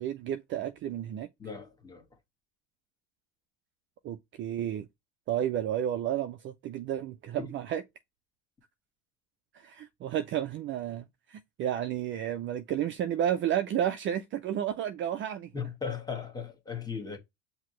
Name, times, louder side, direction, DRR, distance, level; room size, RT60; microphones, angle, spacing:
voice 1, 0.0-1.3 4.0-4.9 5.3-7.8 9.5-15.5, right 10 dB, 35° right, 0.5 m, -32 dB
voice 2, 1.4-2.0 7.4-7.5 15.5-17.2, left 6 dB, 10° left, 1.5 m, -37 dB
5.7 x 2.8 x 3.0 m
supercardioid pair, 125°, 35 cm